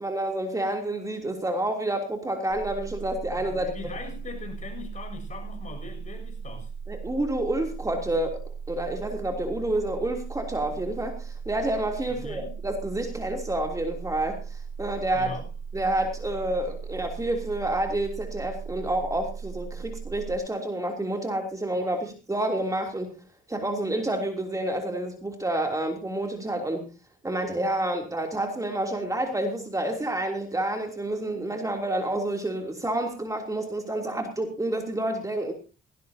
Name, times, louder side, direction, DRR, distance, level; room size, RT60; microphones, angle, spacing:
voice 1, 0.0-3.7 6.9-8.4 8.7-14.4 14.8-15.3 15.7-23.1 23.5-26.9 27.2-35.5, right 1 dB, 15° right, 3 dB, 3.1 m, -29 dB
sound 1, 2.5-20.4, right 6 dB, 35° right, 6.8 m, -38 dB
voice 2, 3.3-6.7 12.1-12.6 15.1-15.5, left 5 dB, 40° left, 4 dB, 7.0 m, -41 dB
18.5 x 17.5 x 2.9 m, 0.32 s
cardioid pair, 90°, 20 cm